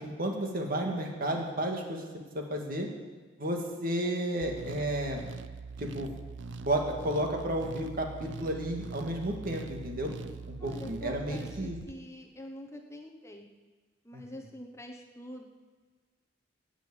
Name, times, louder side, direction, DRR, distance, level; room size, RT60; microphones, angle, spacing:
voice 1, 0.0-2.0 2.3-2.9 3.4-5.2 5.8-6.1 6.6-10.1 10.6-11.8 14.1-14.2, right 1 dB, 50° right, 1 dB, 2.1 m, -32 dB
sound 1, 4.4-11.9, right 4 dB, 70° right, 0.6 m, -43 dB
voice 2, 10.6-13.5 14.0-15.5, left 1 dB, 15° left, 2 dB, 1.0 m, -45 dB
17.5 x 6.3 x 8.7 m, 1.4 s
head